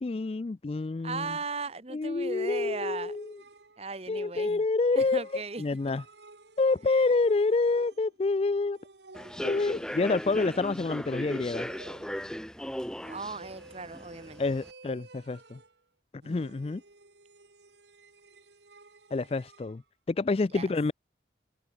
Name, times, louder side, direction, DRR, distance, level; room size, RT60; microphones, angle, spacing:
voice 1, 0.0-1.4 1.9-3.4 4.1-6.0 6.6-8.8 9.4-11.7 14.4-15.6 16.3-16.8 19.1-19.8 20.1-20.9, left 3 dB, 35° left, 0.4 m, -28 dB
voice 2, 1.0-3.1 3.8-4.6 4.9-6.0 6.9-7.0 13.0-14.4 20.5-20.7, right 3 dB, 35° right, 1.4 m, -37 dB
sound 1, 2.3-4.0 5.2-8.3 8.7-11.1 11.6-12.3 13.0-15.8 16.2-19.7, right 2 dB, 75° right, 1.9 m, -52 dB
Human voice / Subway metro underground, 9.1-14.7, equal, 5° left, 1.3 m, -37 dB
head